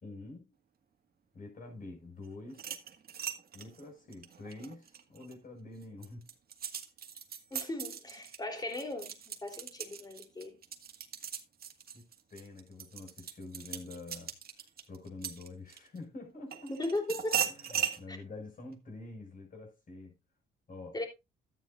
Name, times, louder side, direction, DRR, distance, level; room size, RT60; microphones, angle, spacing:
voice 1, 0.0-0.5 1.3-2.6 3.5-6.3 11.9-14.3 14.9-16.7 17.4-20.2 20.7-21.1, left 2 dB, 45° left, 6.0 m, -47 dB
sound 1, 2.5-5.3 5.8-16.0 16.5-18.0, right 9 dB, 50° right, 1.8 m, -39 dB
voice 2, 7.5-9.1 9.4-10.6 16.8-17.8 18.1-18.2 20.9-21.1, left 2 dB, 20° left, 3.4 m, -37 dB
13.0 x 9.1 x 2.5 m
cardioid pair, 90°, 20 cm